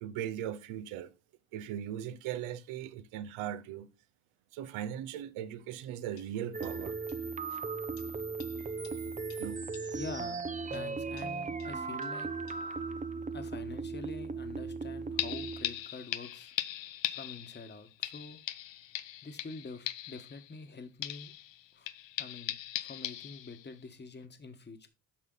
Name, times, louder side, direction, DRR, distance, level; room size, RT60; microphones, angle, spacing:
voice 1, 0.0-1.1 1.5-3.9 4.5-7.0 9.4-9.6, right 10 dB, 80° right, 0.9 m, -38 dB
sound 1, 5.7-5.8 6.2-6.3 6.6-6.7 7.1-7.2 8.0-8.1 8.4-8.6 8.8-9.0 9.3-9.4 9.7-9.9 10.7-10.8 11.2-11.7 12.0-12.1 12.5-12.6 15.2-20.7 21.0-23.8 24.2-24.3, left 14 dB, 65° left, 0.8 m, -40 dB
sound 2, 6.5-15.8, right 4 dB, 15° right, 0.6 m, -37 dB
voice 2, 9.9-10.4 10.7-12.3 13.3-16.5 17.1-18.4 19.2-21.3 21.7-21.9 22.2-24.9, left 4 dB, 20° left, 1.3 m, -46 dB
8.7 x 5.6 x 3.9 m
supercardioid pair, 70°, 49 cm